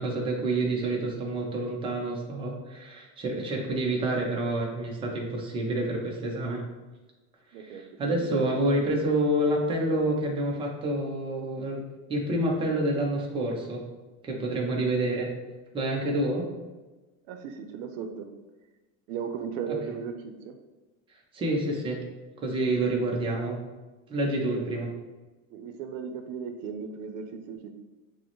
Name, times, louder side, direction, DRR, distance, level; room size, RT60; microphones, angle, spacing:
voice 1, 0.0-6.6 7.6-11.8 12.1-13.8 14.2-15.3 15.7-16.5 19.7-19.8 21.3-22.0 22.4-23.6 24.1-24.9, right 1 dB, 15° right, -1 dB, 0.4 m, -28 dB
voice 2, 7.5-7.8 8.3-8.5 17.3-18.3 19.1-20.6 24.5-24.8 25.5-27.7, right 6 dB, 85° right, 6 dB, 0.6 m, -36 dB
6.2 x 2.1 x 3.0 m, 1.2 s
cardioid pair, 170°, 38 cm